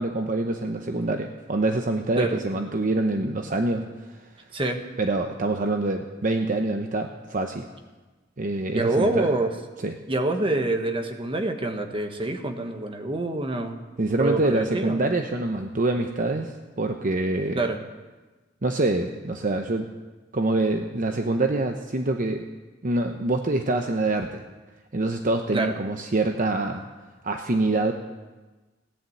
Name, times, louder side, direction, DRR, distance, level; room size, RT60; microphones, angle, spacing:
voice 1, 0.0-4.2 5.0-7.7 8.4-9.3 9.8-9.9 14.0-17.7 18.6-19.9 20.3-22.4 22.8-24.4 24.9-26.8 27.2-27.9, right 2 dB, 45° right, 5 dB, 0.9 m, -25 dB
voice 2, 8.7-9.5 10.1-13.8 14.2-15.0 17.5-17.8 25.5-25.7, right 2 dB, 30° right, 5 dB, 1.4 m, -26 dB
17.0 x 10.5 x 8.0 m, 1.2 s
head